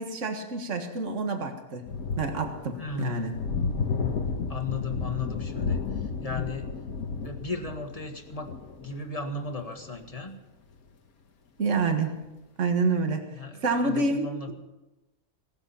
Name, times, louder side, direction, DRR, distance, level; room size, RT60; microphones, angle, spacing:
voice 1, 0.0-1.8 2.2-3.3 11.6-12.1 12.6-13.2 13.6-14.5, right 3 dB, 55° right, 5 dB, 2.0 m, -27 dB
sound 1, 1.9-10.3 11.9-12.0, left 5 dB, 75° left, 1.8 m, -32 dB
voice 2, 2.8-3.3 4.5-6.7 7.2-8.5 8.8-10.4 13.3-14.5, left 3 dB, 25° left, 4 dB, 1.7 m, -35 dB
18.0 x 13.0 x 5.8 m, 1.0 s
omnidirectional pair, 1.6 m